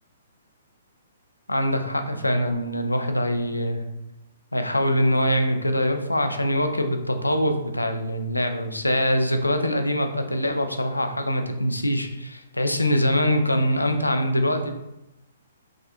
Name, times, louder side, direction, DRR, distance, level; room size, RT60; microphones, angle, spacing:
voice 1, 1.5-3.8 4.5-14.7, equal, 90° left, 6 dB, 0.3 m, -23 dB
3.5 x 2.4 x 2.4 m, 0.89 s
figure-of-eight pair, 125°, 0 cm